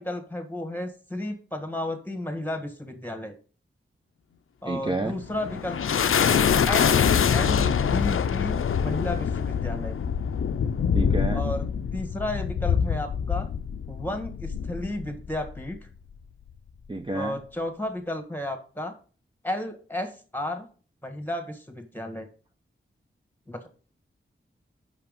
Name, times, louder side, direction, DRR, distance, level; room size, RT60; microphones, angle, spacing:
voice 1, 0.0-3.3 4.6-6.1 6.6-6.9 7.3-10.0 11.3-11.7 11.9-13.5 13.9-15.8 17.1-18.9 19.4-20.7 21.0-22.3 23.5-23.7, left 1 dB, 10° left, 6 dB, 1.6 m, -33 dB
voice 2, 4.6-5.2 10.9-11.4 16.9-17.4, right 2 dB, 25° right, 4 dB, 0.7 m, -29 dB
sound 1, 5.0-15.7, left 7 dB, 85° left, 0.5 m, -25 dB
5.8 x 5.7 x 5.3 m, 0.40 s
wide cardioid pair, 60°, 21 cm